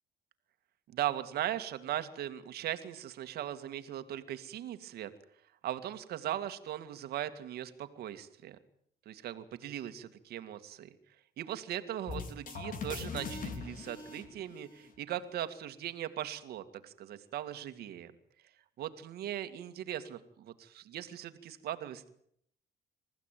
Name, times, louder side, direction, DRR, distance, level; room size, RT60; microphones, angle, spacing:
voice 1, 0.9-5.1 5.6-8.6 9.1-11.0 11.4-18.1 18.8-22.1, right 12 dB, 70° right, 9 dB, 2.3 m, -39 dB
sound 1, 12.1-15.0, left 4 dB, 55° left, 3.9 m, -41 dB
28.0 x 15.0 x 9.3 m, 0.71 s
cardioid pair, 110°, 17 cm